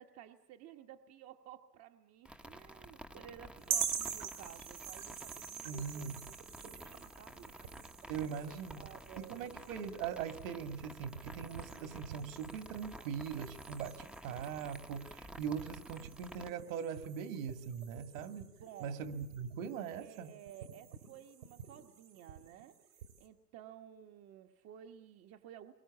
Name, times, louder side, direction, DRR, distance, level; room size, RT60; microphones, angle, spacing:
voice 1, 0.0-6.3 6.6-7.5 8.2-8.4 8.7-9.7 18.6-19.0 20.0-25.7, right 10 dB, 30° right, 5 dB, 1.2 m, -54 dB
sound 1, 2.3-16.5, equal, ahead, 0.9 m, -52 dB
sound 2, 3.6-23.3, right 8 dB, 75° right, 5.0 m, -46 dB
voice 2, 5.6-6.2 8.1-8.8 9.2-18.5 18.8-20.3, right 7 dB, 55° right, 8 dB, 2.4 m, -41 dB
29.5 x 23.0 x 8.5 m, 0.89 s
hypercardioid pair, 115°, 47 cm